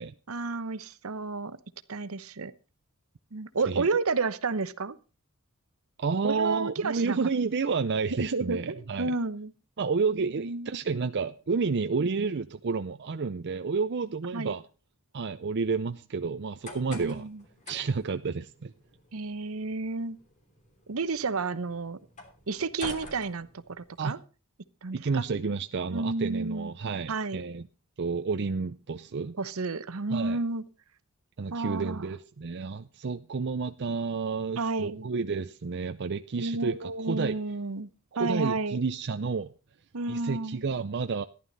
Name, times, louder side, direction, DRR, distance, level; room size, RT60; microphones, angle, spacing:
voice 1, 0.3-1.6 1.9-2.5 3.3-5.0 6.2-7.2 8.2-9.5 10.2-10.7 12.0-12.3 14.3-14.5 16.9-17.4 19.1-20.2 20.9-22.0 22.5-24.2 24.8-25.2 25.9-26.7 27.1-27.4 29.4-30.6 31.5-32.1 34.6-35.1 36.4-37.9 38.2-38.9 39.9-40.6, right 3 dB, 70° right, 0.9 m, -31 dB
voice 2, 6.0-9.1 9.8-14.6 15.1-17.3 17.7-18.7 24.0-24.2 24.9-27.7 28.0-29.3 30.1-30.4 31.4-37.4 38.2-39.5 40.1-41.2, right 4 dB, 55° right, 0.6 m, -30 dB
sound 1, 16.4-24.1, left 1 dB, 35° left, 3.2 m, -47 dB
14.5 x 11.0 x 4.0 m
head